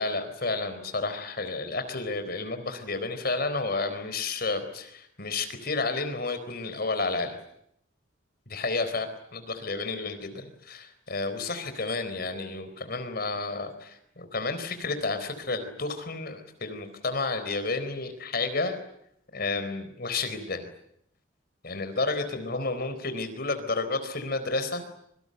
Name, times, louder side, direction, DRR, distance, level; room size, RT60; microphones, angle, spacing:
voice 1, 0.0-7.4 8.5-18.8 19.3-20.7 21.6-24.8, left 3 dB, 50° left, 9 dB, 4.2 m, -31 dB
27.0 x 24.5 x 8.0 m, 0.75 s
head